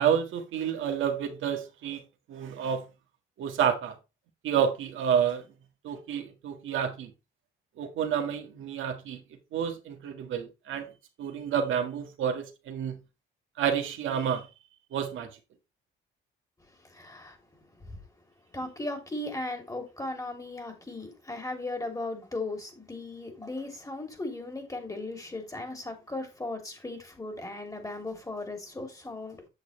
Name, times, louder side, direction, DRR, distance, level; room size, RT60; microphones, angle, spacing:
voice 1, 0.0-2.0 2.3-2.8 3.4-3.9 4.4-5.4 5.8-7.1 7.8-9.2 9.5-10.9 11.2-13.0 13.6-14.5 14.9-15.3, right 8 dB, 80° right, 1.7 m, -29 dB
voice 2, 16.8-17.4 17.8-18.0 18.5-29.5, left 2 dB, 15° left, 2.9 m, -37 dB
8.2 x 6.6 x 3.2 m
cardioid pair, 90°, 20 cm